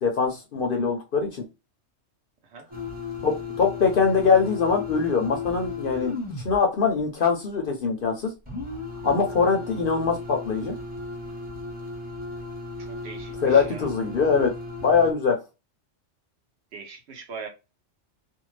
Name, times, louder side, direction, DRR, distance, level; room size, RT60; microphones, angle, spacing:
voice 1, 0.0-1.4 3.2-6.1 6.4-8.2 9.0-10.7 13.4-14.5 14.8-15.4, left 5 dB, 55° left, 3 dB, 0.7 m, -22 dB
sound 1, 2.7-6.6 8.5-15.1, left 4 dB, 10° right, 0.9 m, -35 dB
voice 2, 12.8-13.9 16.7-17.5, right 5 dB, 65° right, 4 dB, 0.9 m, -41 dB
2.6 x 2.2 x 3.1 m, 0.26 s
omnidirectional pair, 1.3 m